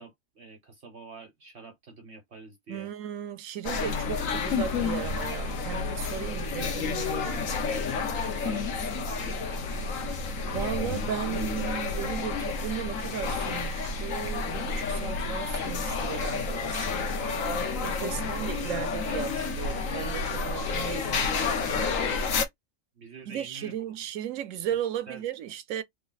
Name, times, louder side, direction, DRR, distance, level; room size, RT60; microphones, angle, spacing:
voice 1, 0.0-2.9 3.9-4.3 8.1-9.6 18.1-19.6 20.8-21.0 22.9-24.0 25.1-25.2, right 4 dB, 55° right, 1.3 m, -47 dB
voice 2, 2.7-4.2 4.5-7.5 10.1-10.2 10.5-17.1 17.8-21.5 23.3-25.8, right 10 dB, 85° right, 1.0 m, -36 dB
sound 1, 3.6-22.4, left 4 dB, 80° left, 1.3 m, -30 dB
3.4 x 2.2 x 3.9 m
omnidirectional pair, 1.4 m